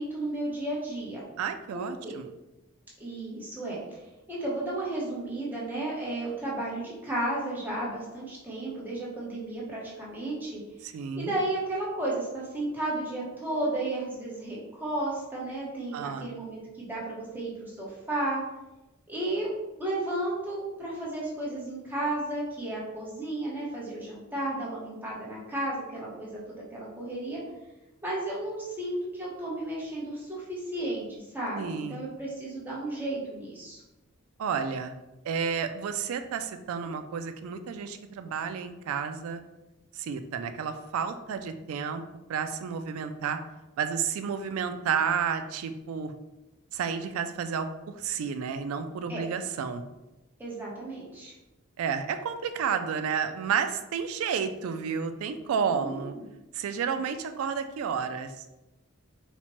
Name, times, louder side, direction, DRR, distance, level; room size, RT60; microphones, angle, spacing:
voice 1, 0.0-1.2 1.7-2.2 3.0-4.0 4.3-10.6 11.2-18.4 19.1-19.5 19.8-27.4 28.0-33.8 49.1-49.2 50.4-51.3 55.7-56.2, right 1 dB, 10° right, -6 dB, 0.9 m, -33 dB
voice 2, 1.4-2.3 10.8-11.3 15.9-16.3 31.5-32.0 34.4-34.9 35.2-39.4 39.9-42.0 42.3-43.4 43.8-46.1 46.7-47.7 48.0-49.9 51.8-56.1 56.5-58.5, right 6 dB, 80° right, 9 dB, 0.3 m, -31 dB
4.1 x 2.1 x 2.9 m, 1.0 s
head